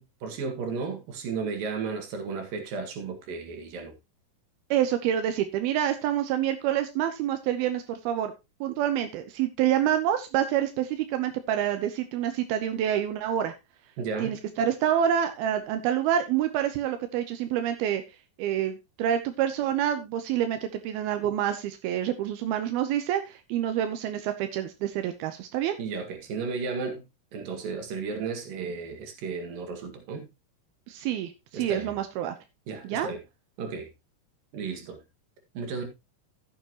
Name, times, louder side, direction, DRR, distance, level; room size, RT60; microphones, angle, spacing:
voice 1, 0.0-3.9 14.0-14.3 21.2-21.3 25.8-27.0 27.3-30.3 31.5-31.9 32.7-33.2 33.6-33.9 34.5-35.0 35.6-35.9, right 5 dB, 65° right, 3.6 m, -34 dB
voice 2, 4.7-8.3 8.6-13.5 14.2-18.0 18.4-25.8 30.9-32.4 32.8-33.1, right 10 dB, 90° right, 2.8 m, -27 dB
15.0 x 7.3 x 2.9 m
omnidirectional pair, 4.3 m